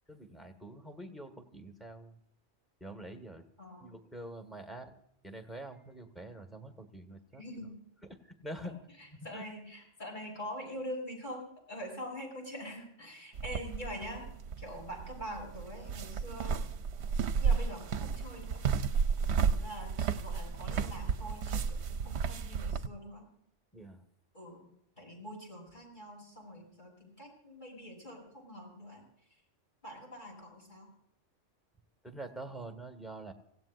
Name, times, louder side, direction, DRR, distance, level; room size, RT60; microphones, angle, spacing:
voice 1, 0.1-2.2 2.8-3.4 3.8-4.9 5.2-7.4 8.1-8.7 9.1-9.4 23.7-24.0 32.0-33.3, right 1 dB, ahead, 5 dB, 1.6 m, -46 dB
voice 2, 7.4-7.8 9.2-14.3 14.6-16.7 17.4-18.7 19.5-23.3 24.3-24.6 25.0-29.0 29.8-30.9, equal, 40° left, -1 dB, 7.3 m, -44 dB
sound 1, 13.3-22.9, right 6 dB, 65° right, 1.0 m, -33 dB
25.5 x 17.0 x 2.6 m, 0.75 s
omnidirectional pair, 1.3 m